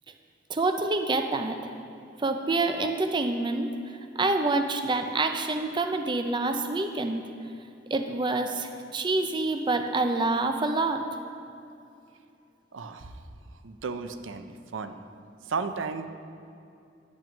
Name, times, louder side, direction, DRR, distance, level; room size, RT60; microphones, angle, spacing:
voice 1, 0.5-1.6 2.2-3.7 4.2-7.2 7.9-11.0, right 3 dB, 25° right, 6 dB, 0.5 m, -27 dB
voice 2, 12.7-13.1 13.6-15.0 15.5-16.1, right 4 dB, 90° right, 9 dB, 0.5 m, -34 dB
8.9 x 6.0 x 6.1 m, 2.6 s
head